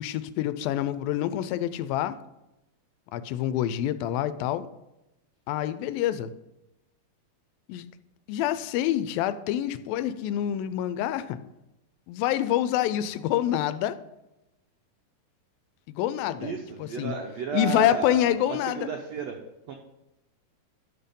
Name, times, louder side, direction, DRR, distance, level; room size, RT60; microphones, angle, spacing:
voice 1, 0.0-2.2 3.1-4.7 5.5-6.3 7.7-7.8 8.3-11.4 12.1-14.0 15.9-17.2 17.5-18.9, left 11 dB, 85° left, 2.3 m, -27 dB
voice 2, 16.4-19.4 19.7-19.8, right 6 dB, 80° right, 1.5 m, -33 dB
11.0 x 6.7 x 5.2 m
omnidirectional pair, 4.2 m